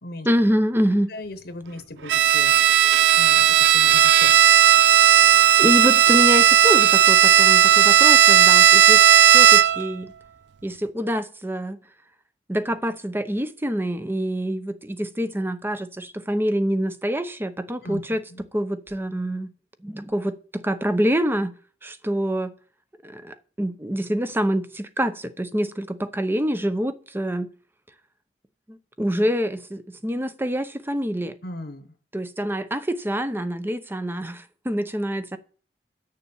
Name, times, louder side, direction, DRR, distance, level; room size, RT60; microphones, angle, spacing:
voice 1, 0.2-1.1 5.2-10.1 10.6-11.8 12.5-18.2 18.5-19.5 19.8-21.5 21.8-22.5 23.0-27.5 28.7-31.3 32.1-35.4, equal, 15° right, 0.7 m, -26 dB
voice 2, 1.1-2.5 3.2-4.3 17.8-18.0 18.3-18.4 31.4-31.9, left 2 dB, 60° left, 1.1 m, -37 dB
Bowed string instrument, 2.1-9.9, right 10 dB, 80° right, 0.4 m, -15 dB
10.0 x 6.8 x 7.1 m
head